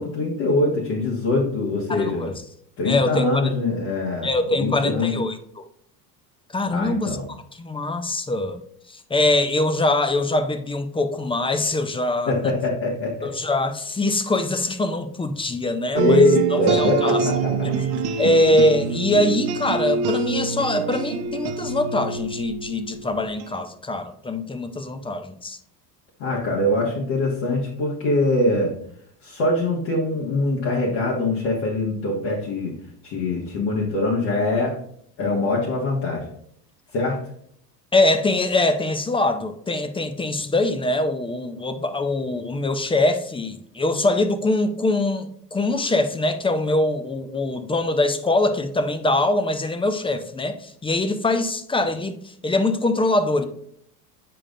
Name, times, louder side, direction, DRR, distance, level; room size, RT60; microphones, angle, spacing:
voice 1, 0.0-2.3 2.8-4.3 4.6-5.1 6.7-7.2 12.3-13.3 15.9-17.7 26.2-28.7 29.2-32.7 33.0-34.8 35.2-36.2 36.9-37.2, left 2 dB, 55° left, -4 dB, 1.7 m, -23 dB
voice 2, 1.9-2.3 2.8-3.5 4.2-5.7 6.5-7.2 7.6-8.6 8.9-12.5 13.2-17.2 17.7-17.9 18.2-25.6 37.9-52.2 52.4-53.4, left 2 dB, 10° left, 9 dB, 0.5 m, -23 dB
sound 1, 16.0-23.5, right 6 dB, 55° right, 0.8 m, -25 dB
7.6 x 4.9 x 2.5 m, 0.67 s
hypercardioid pair, 75°, 47 cm